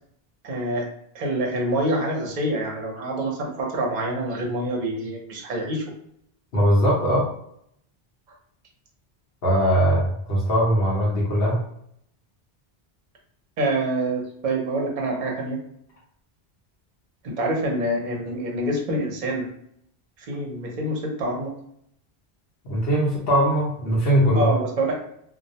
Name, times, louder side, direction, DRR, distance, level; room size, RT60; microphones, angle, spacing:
voice 1, 0.4-0.9 1.1-5.9 13.6-15.6 17.2-19.5 20.2-21.5 24.3-25.0, right 1 dB, 50° right, 0 dB, 0.7 m, -26 dB
voice 2, 6.5-7.3 9.4-11.6 22.6-24.5, equal, 70° left, -4 dB, 0.9 m, -20 dB
2.3 x 2.0 x 2.7 m, 0.71 s
omnidirectional pair, 1.0 m